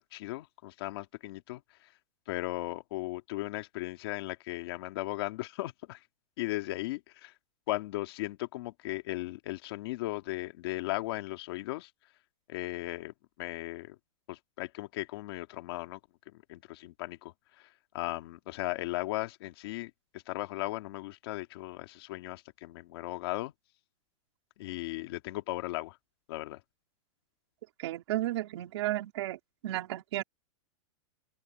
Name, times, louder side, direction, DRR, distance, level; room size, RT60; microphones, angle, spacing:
voice 1, 0.0-1.9 2.3-6.0 6.4-7.4 7.7-11.9 12.5-14.0 14.3-16.0 16.3-23.5 24.6-26.0 26.3-26.6, left 18 dB, 45° left, 2.3 m, -37 dB
voice 2, 27.8-29.4 29.6-30.2, right 15 dB, 50° right, 3.6 m, -33 dB
open air
supercardioid pair, 175°, 18 cm